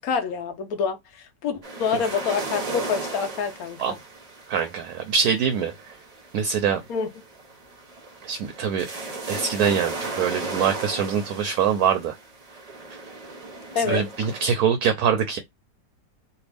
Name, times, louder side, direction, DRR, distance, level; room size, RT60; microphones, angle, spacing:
voice 1, 0.0-4.0 6.9-7.1 13.7-14.0, left 6 dB, 60° left, 1.1 m, -27 dB
sound 1, 1.6-14.5, right 2 dB, 40° right, 0.5 m, -36 dB
voice 2, 4.5-6.0 6.3-6.8 8.2-8.9 9.3-12.1 13.8-15.4, right 7 dB, 70° right, 0.9 m, -24 dB
3.3 x 2.6 x 3.3 m
omnidirectional pair, 2.0 m